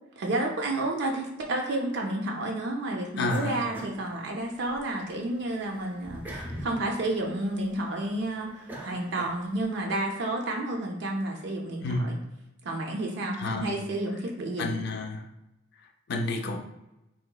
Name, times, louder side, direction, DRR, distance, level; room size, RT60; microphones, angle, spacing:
voice 1, 0.2-12.2 12.6-14.7, right 2 dB, 60° right, 0 dB, 0.5 m, -31 dB
voice 2, 3.2-3.7 11.8-12.1 13.3-13.8 14.6-15.3 15.7-16.6, left 2 dB, 55° left, 4 dB, 0.4 m, -31 dB
sound 1, 3.3-4.8 5.2-9.8, equal, 10° right, 0.5 m, -43 dB
3.8 x 3.0 x 2.3 m, 0.92 s
head